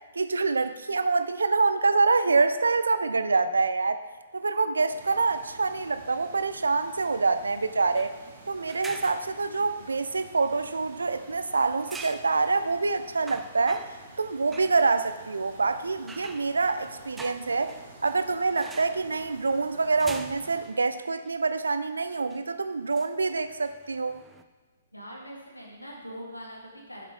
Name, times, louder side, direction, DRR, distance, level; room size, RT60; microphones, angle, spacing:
voice 1, 0.1-4.0 4.3-8.1 8.5-13.9 14.2-17.7 18.0-24.2, right 4 dB, 75° right, 11 dB, 0.5 m, -26 dB
sound 1, 4.9-20.7, right 3 dB, 45° right, 2.1 m, -50 dB
sound 2, 8.0-8.2 8.7-9.7 11.9-12.3 12.8-12.9 13.3-14.1 14.5-14.8 16.1-18.2 18.6-19.0 20.0-20.8 21.3-21.4 22.1-22.4 22.9-24.4, right 3 dB, 10° right, 0.4 m, -44 dB
voice 2, 24.9-27.0, equal, 90° left, -1 dB, 2.0 m, -42 dB
10.5 x 6.0 x 3.8 m, 1.3 s
figure-of-eight pair, 120°, 0 cm